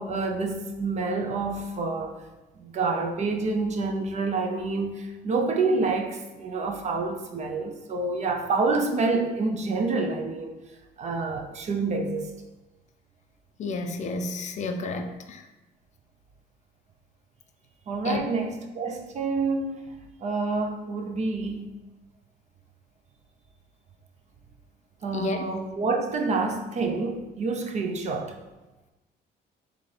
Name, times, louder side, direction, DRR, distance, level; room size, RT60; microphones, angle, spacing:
voice 1, 0.0-2.2 2.6-10.6 11.0-12.3 17.9-19.9 20.2-21.7 25.0-28.4, right 3 dB, 40° right, 0.5 m, -28 dB
voice 2, 13.6-15.4 18.0-18.2 25.1-25.4, left 3 dB, 45° left, 0.4 m, -31 dB
3.9 x 3.2 x 3.2 m
cardioid pair, 110°, 17 cm